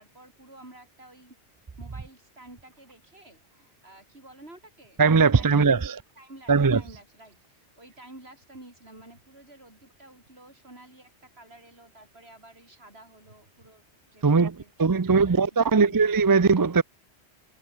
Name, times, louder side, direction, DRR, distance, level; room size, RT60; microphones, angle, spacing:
voice 1, 0.0-1.4 1.8-13.9 14.1-16.0, right 1 dB, 65° right, 6.0 m, -50 dB
voice 2, 5.0-5.8 6.5-6.8 14.2-16.8, right 5 dB, 25° right, 0.4 m, -20 dB
omnidirectional pair, 1.1 m